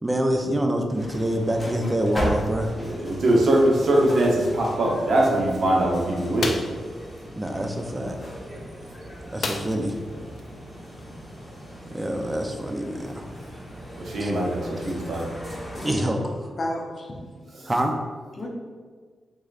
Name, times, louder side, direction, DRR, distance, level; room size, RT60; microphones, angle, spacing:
voice 1, 0.0-2.7 7.4-8.2 9.3-9.9 11.9-13.2 14.2-14.3 15.8-16.3 17.7-17.9, equal, 20° right, 4 dB, 0.5 m, -26 dB
sound 1, 0.9-15.9, equal, 15° left, 1.2 m, -37 dB
voice 2, 2.8-6.6 14.0-15.3, right 1 dB, 70° right, -2 dB, 0.7 m, -22 dB
sound 2, 6.4-6.8 9.4-10.0 10.4-10.5 10.9-11.0, left 4 dB, 70° left, 0.3 m, -30 dB
voice 3, 15.7-16.1 16.5-17.6 18.4-18.5, left 1 dB, 40° left, -1 dB, 0.7 m, -33 dB
3.7 x 3.1 x 2.4 m, 1.5 s
cardioid pair, 75°, 0 cm